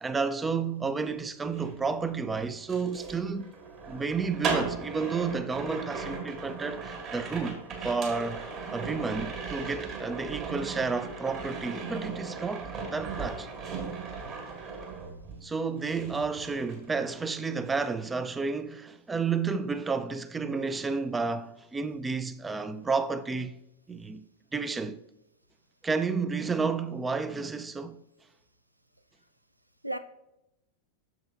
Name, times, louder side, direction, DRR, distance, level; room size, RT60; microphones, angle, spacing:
voice 1, 0.0-3.5 3.9-8.4 8.7-13.5 15.4-23.6 23.9-25.0 25.8-28.0, right 4 dB, 15° right, 0.4 m, -31 dB
sound 1, 1.4-15.5 15.8-17.3 17.6-17.9, right 4 dB, 35° right, 1.7 m, -37 dB
voice 2, 13.9-14.4 29.8-30.0, right 1 dB, 85° right, 0.4 m, -37 dB
7.5 x 6.3 x 2.6 m
figure-of-eight pair, 90°, 0 cm